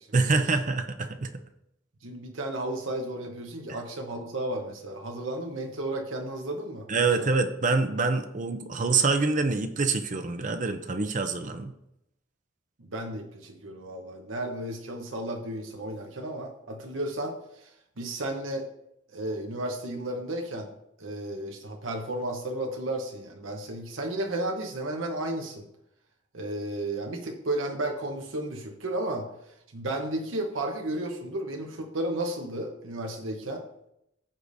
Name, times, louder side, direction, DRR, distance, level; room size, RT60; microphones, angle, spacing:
voice 1, 0.1-1.3 6.9-11.7, right 4 dB, 40° right, 8 dB, 0.6 m, -26 dB
voice 2, 2.0-6.9 7.2-7.3 12.9-17.7 18.0-18.6 19.1-20.7 21.0-25.7 26.3-29.3 29.7-33.6, right 1 dB, 90° right, 2 dB, 1.0 m, -33 dB
14.5 x 5.0 x 2.6 m, 0.81 s
head